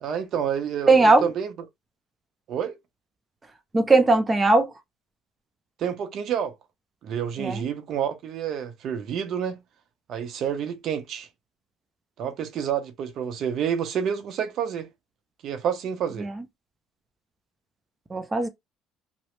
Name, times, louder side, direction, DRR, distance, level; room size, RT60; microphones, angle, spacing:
voice 1, 0.0-1.5 2.5-2.7 5.8-6.5 7.0-9.6 10.1-11.3 12.2-14.9 15.4-16.3, right 8 dB, 60° right, 0.6 m, -29 dB
voice 2, 0.9-1.3 3.7-4.7 7.4-7.6 16.2-16.3 18.1-18.5, right 3 dB, 20° right, 0.5 m, -18 dB
2.9 x 2.0 x 3.1 m
cardioid pair, 105°, 0 cm